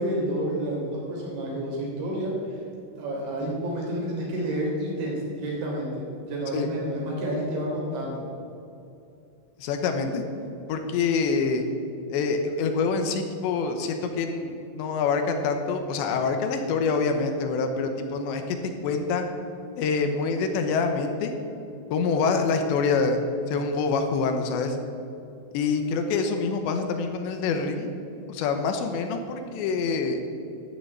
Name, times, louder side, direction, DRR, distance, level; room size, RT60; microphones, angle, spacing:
voice 1, 0.0-2.6 3.0-8.3, right 1 dB, 80° right, -3 dB, 5.6 m, -29 dB
voice 2, 9.6-10.2 10.7-11.6 12.1-18.6 18.8-19.2 19.8-21.3 21.9-23.2 23.5-24.8 25.5-27.9 28.3-30.2, left 4 dB, 80° left, 6 dB, 3.1 m, -26 dB
12.5 x 6.9 x 8.4 m, 2.7 s
omnidirectional pair, 5.2 m